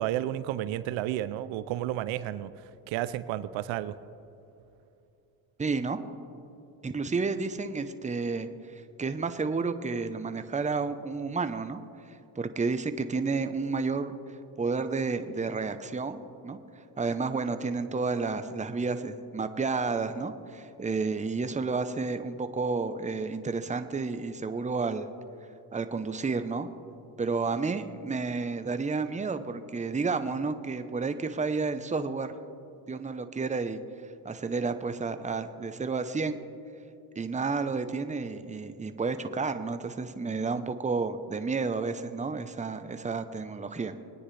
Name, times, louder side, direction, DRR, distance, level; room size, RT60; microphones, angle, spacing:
voice 1, 0.0-4.0, right 13 dB, 80° right, 15 dB, 0.6 m, -32 dB
voice 2, 5.6-6.0 6.8-25.1 25.7-26.7 27.2-32.3 32.9-36.4 37.1-44.0, right 4 dB, 15° right, 9 dB, 0.8 m, -31 dB
22.5 x 9.8 x 3.3 m, 2.8 s
supercardioid pair, 75°, 46 cm